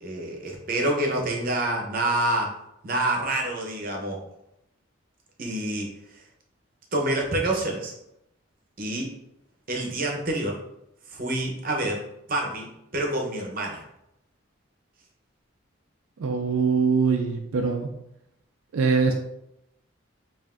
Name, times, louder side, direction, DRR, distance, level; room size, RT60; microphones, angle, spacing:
voice 1, 0.0-2.5 2.8-4.2 5.4-6.2 6.9-7.9 8.8-9.1 9.7-10.6 11.1-13.8, right 1 dB, 45° right, 0 dB, 0.7 m, -27 dB
voice 2, 16.2-17.9 18.7-19.1, right 5 dB, 90° right, 3 dB, 0.4 m, -23 dB
5.5 x 2.5 x 2.4 m, 0.82 s
head